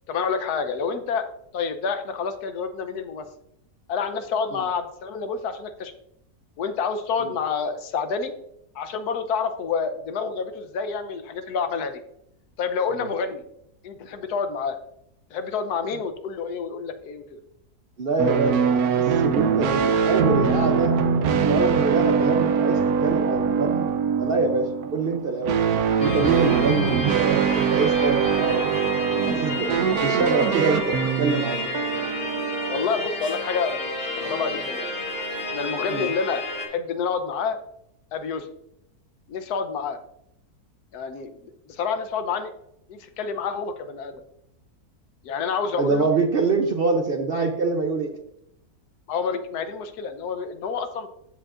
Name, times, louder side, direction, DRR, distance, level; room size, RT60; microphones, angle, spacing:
voice 1, 0.1-1.3 1.5-3.2 3.9-5.9 6.6-8.3 8.7-12.0 12.6-13.4 13.8-14.8 15.3-17.4 32.7-33.8 34.2-34.9 35.5-37.6 38.1-38.5 39.3-40.0 40.9-42.5 42.9-44.2 45.2-46.1 49.1-51.1, left 5 dB, 80° left, 9 dB, 1.3 m, -28 dB
voice 2, 18.0-25.6 26.0-29.7 30.0-31.7 35.9-36.1 45.8-48.1, right 4 dB, 55° right, 4 dB, 0.7 m, -25 dB
sound 1, 18.2-32.9, right 6 dB, 75° right, 1.1 m, -23 dB
sound 2, 26.0-36.7, left 2 dB, 40° left, 1.6 m, -31 dB
14.0 x 5.0 x 2.4 m, 0.78 s
omnidirectional pair, 1.7 m